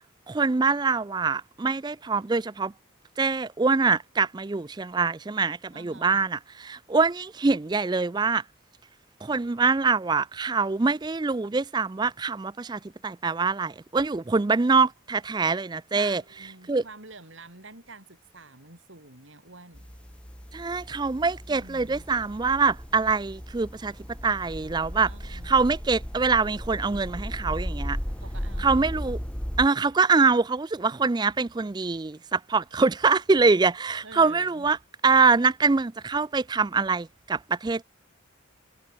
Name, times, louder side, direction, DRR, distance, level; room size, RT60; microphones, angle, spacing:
voice 1, 0.3-2.7 3.2-8.4 9.2-16.2 16.7-16.8 20.5-23.9 24.2-28.0 28.6-29.2 29.6-34.8 35.0-37.8, right 4 dB, 20° right, 0.4 m, -24 dB
voice 2, 5.7-6.3 15.9-19.9 21.5-22.0 25.1-25.6 28.2-28.8 34.0-34.7, right 3 dB, 65° right, 5.0 m, -48 dB
sound 1, 19.7-29.7, equal, 5° left, 1.6 m, -36 dB
head